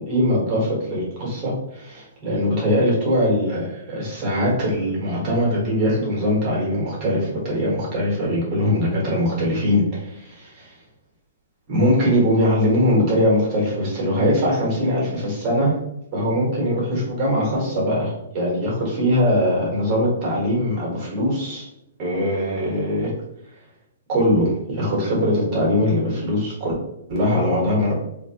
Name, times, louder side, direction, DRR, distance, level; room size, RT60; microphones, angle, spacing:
voice 1, 0.1-10.7 11.7-15.8 16.1-21.7 22.0-23.1 24.1-26.7 27.1-27.9, equal, 25° right, -4 dB, 1.2 m, -21 dB
4.2 x 2.6 x 2.9 m, 0.84 s
hypercardioid pair, 170°, 0 cm